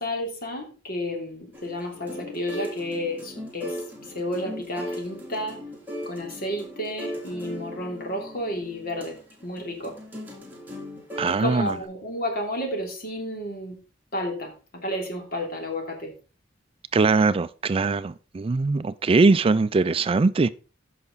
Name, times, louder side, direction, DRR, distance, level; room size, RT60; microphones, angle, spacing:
voice 1, 0.0-3.8 4.1-5.6 6.0-9.2 9.4-9.9 11.2-13.8 14.1-16.1, left 1 dB, 55° left, 3.1 m, -31 dB
sound 1, 1.5-11.8, equal, 10° right, 3.3 m, -38 dB
voice 2, 11.2-11.7 16.9-20.5, right 3 dB, 30° right, 0.4 m, -21 dB
14.5 x 5.8 x 4.0 m
head